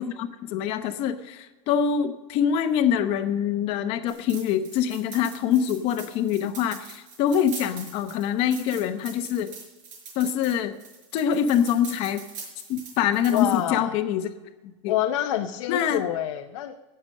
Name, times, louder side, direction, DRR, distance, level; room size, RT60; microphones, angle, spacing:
voice 1, 0.0-9.5 10.2-10.7 11.1-12.2 12.7-14.3 14.8-15.0 15.7-16.0, left 8 dB, 35° left, 9 dB, 0.9 m, -25 dB
sound 1, 4.1-13.6, right 5 dB, 70° right, 5.8 m, -43 dB
voice 2, 13.3-13.9 14.9-16.7, left 12 dB, 75° left, 5 dB, 0.8 m, -27 dB
17.5 x 6.9 x 6.5 m, 1.1 s
supercardioid pair, 175°, 17 cm